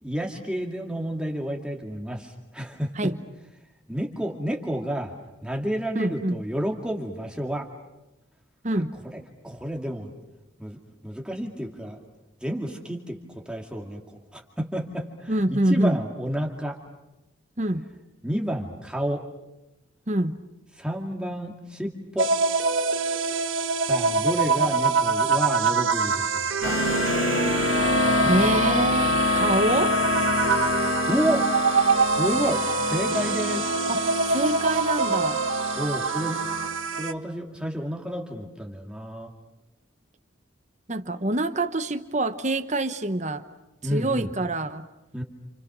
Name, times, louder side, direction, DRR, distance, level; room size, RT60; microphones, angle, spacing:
voice 1, 0.0-3.1 3.9-7.7 9.1-10.1 10.6-12.0 12.4-16.8 18.2-19.2 20.7-22.3 23.8-26.7 31.1-31.4 32.1-33.7 35.7-36.4 37.0-39.3 43.8-44.3 45.1-45.2, equal, 5° right, 1 dB, 2.3 m, -30 dB
voice 2, 5.9-6.4 8.6-8.9 15.3-16.0 17.6-17.8 20.1-20.4 28.2-30.0 33.9-35.4 40.9-43.5 43.9-44.9, right 1 dB, 35° right, 9 dB, 1.1 m, -25 dB
sound 1, 22.2-37.1, right 4 dB, 85° right, 1.6 m, -25 dB
sound 2, 26.6-36.7, left 3 dB, 85° left, 2.9 m, -26 dB
29.5 x 28.5 x 6.2 m, 0.95 s
head